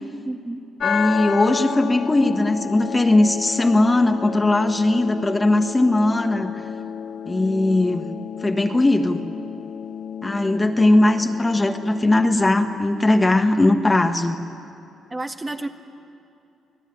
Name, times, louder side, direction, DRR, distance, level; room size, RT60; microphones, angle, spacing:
voice 1, 0.2-0.6 15.1-15.7, right 2 dB, 20° right, 4 dB, 1.7 m, -30 dB
sound 1, 0.8-12.8, left 7 dB, 55° left, 0.6 m, -31 dB
voice 2, 0.8-6.5 7.3-8.1 8.4-9.2 10.2-14.4, left 2 dB, 20° left, 5 dB, 1.5 m, -19 dB
29.0 x 19.0 x 9.8 m, 2.6 s
cardioid pair, 90°, 0 cm